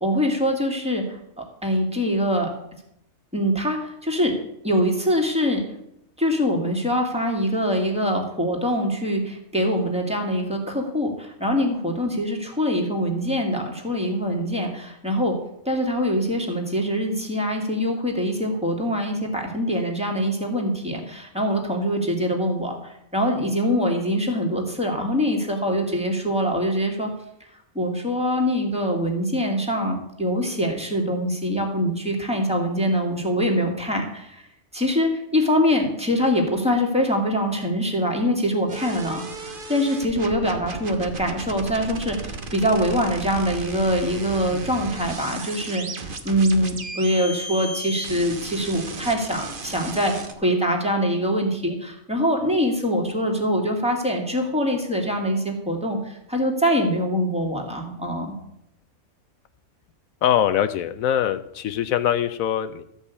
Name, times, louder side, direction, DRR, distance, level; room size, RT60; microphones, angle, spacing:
voice 1, 0.0-2.5 3.3-4.3 4.6-5.6 6.2-15.3 15.7-27.1 27.7-34.4 34.7-58.3, equal, 5° right, 1 dB, 2.1 m, -24 dB
sound 1, 38.7-50.3, right 3 dB, 40° right, 1.2 m, -35 dB
voice 2, 60.2-62.8, left 10 dB, 80° left, 11 dB, 1.0 m, -23 dB
13.5 x 5.5 x 8.2 m, 0.79 s
omnidirectional pair, 1.5 m